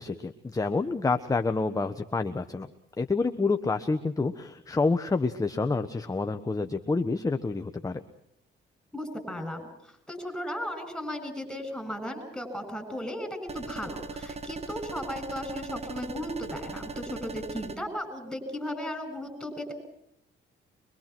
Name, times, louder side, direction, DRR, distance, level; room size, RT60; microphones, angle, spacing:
voice 1, 0.0-2.7 3.0-8.0, left 3 dB, 15° left, 8 dB, 1.1 m, -28 dB
voice 2, 8.9-19.7, left 1 dB, ahead, 6 dB, 7.4 m, -36 dB
sound 1, 13.5-17.8, right 3 dB, 30° right, 1.5 m, -39 dB
24.5 x 23.0 x 6.1 m, 0.77 s
cardioid pair, 90°, 20 cm